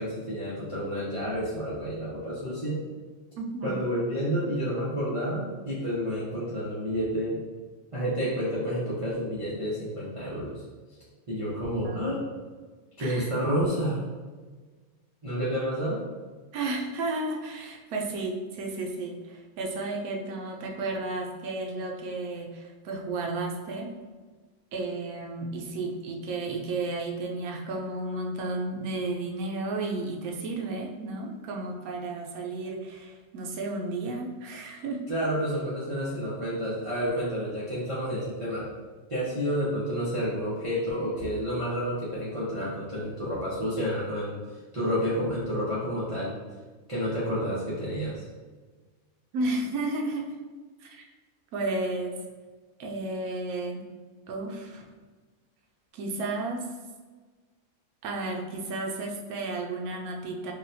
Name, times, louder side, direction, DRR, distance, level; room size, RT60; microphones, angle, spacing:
voice 1, 0.0-2.8 3.6-7.4 7.9-10.6 11.3-12.2 13.0-14.0 15.2-16.0 35.1-38.7 39.1-44.4 44.7-46.4 46.9-48.2, equal, 35° right, -9 dB, 0.5 m, -30 dB
voice 2, 3.4-3.8 11.8-12.2 13.0-13.3 16.5-23.9 24.7-35.0 49.3-50.4 50.8-51.1 51.5-52.1 52.8-53.8 54.3-54.8 55.9-56.7 58.0-60.5, right 2 dB, 85° right, 0 dB, 1.1 m, -33 dB
3.9 x 2.2 x 2.6 m, 1.4 s
omnidirectional pair, 1.5 m